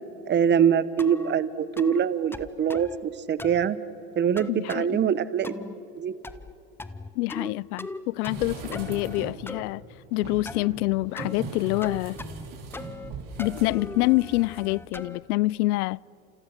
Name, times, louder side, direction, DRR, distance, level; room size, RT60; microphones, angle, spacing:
voice 1, 0.3-3.8 4.2-5.5 6.0-6.1, right 8 dB, 20° right, 0.9 m, -24 dB
sound 1, 1.0-1.4 1.8-2.0 2.3-3.0 3.4-3.7 4.4-4.9 5.4-5.8 6.2-6.5 6.8-7.5 7.8-8.4 8.7-9.6 10.5-10.7 11.2-11.4 11.8-12.5 12.7-13.1 13.4-15.2, left 2 dB, 5° left, 0.6 m, -38 dB
voice 2, 4.5-5.0 7.2-9.8 10.1-12.2 13.4-16.0, left 20 dB, 65° left, 0.5 m, -26 dB
sound 2, 8.2-9.5 10.1-14.7 15.0-15.1, right 4 dB, 40° right, 5.6 m, -40 dB
29.5 x 28.0 x 6.6 m
supercardioid pair, 120°, 49 cm